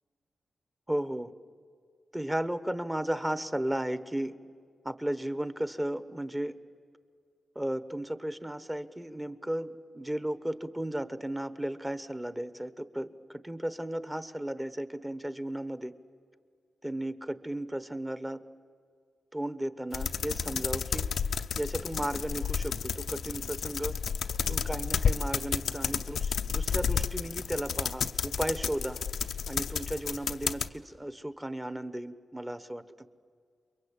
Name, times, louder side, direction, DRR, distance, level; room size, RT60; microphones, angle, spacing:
voice 1, 0.9-1.3 2.1-4.4 4.8-6.6 7.5-15.9 16.8-18.4 19.3-21.0 21.6-24.0 24.5-29.0 29.5-32.8, right 1 dB, 10° right, 13 dB, 1.1 m, -34 dB
sound 1, 19.9-30.7, left 7 dB, 85° left, 0.7 m, -31 dB
29.0 x 23.0 x 8.4 m, 2.1 s
wide cardioid pair, 115°, 0 cm